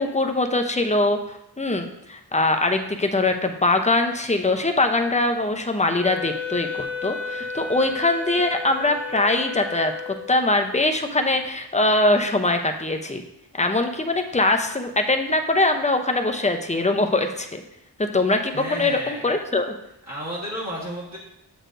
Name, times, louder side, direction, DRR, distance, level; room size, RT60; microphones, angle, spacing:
voice 1, 0.0-9.9 10.3-13.2 13.6-17.6 18.0-19.7, left 2 dB, 15° left, 5 dB, 0.7 m, -22 dB
Wind instrument woodwind instrument, 6.0-10.5, left 4 dB, 80° left, 0.8 m, -33 dB
voice 2, 18.5-19.2 20.1-21.2, equal, 40° right, -7 dB, 1.6 m, -32 dB
7.8 x 6.6 x 2.6 m, 0.82 s
wide cardioid pair, 45°, 43 cm